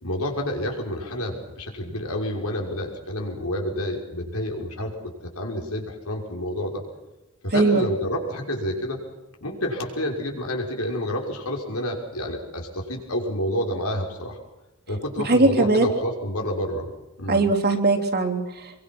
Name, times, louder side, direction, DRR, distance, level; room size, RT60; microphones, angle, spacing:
voice 1, 0.0-6.8 7.4-9.0 9.4-14.4 14.9-16.9 17.2-17.5, equal, 85° left, 1 dB, 5.9 m, -29 dB
voice 2, 7.5-7.8 15.2-15.9 17.3-18.7, right 3 dB, 50° right, 2 dB, 3.4 m, -20 dB
25.0 x 23.5 x 6.1 m, 0.99 s
head